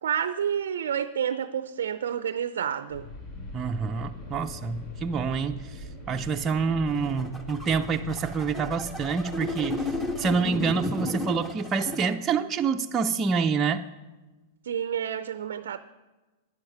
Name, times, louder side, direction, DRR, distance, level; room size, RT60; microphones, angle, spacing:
voice 1, 0.0-3.1 14.6-15.8, right 8 dB, 70° right, 0.5 m, -29 dB
sound 1, 2.9-10.3, left 1 dB, 60° left, 5.4 m, -42 dB
sound 2, 2.9-7.9, left 2 dB, 45° left, 2.7 m, -46 dB
voice 2, 3.5-9.9 10.2-13.8, right 5 dB, 25° right, 0.5 m, -27 dB
sound 3, 6.9-12.1, left 2 dB, 15° left, 1.4 m, -34 dB
13.0 x 9.8 x 5.4 m
hypercardioid pair, 105°, 0 cm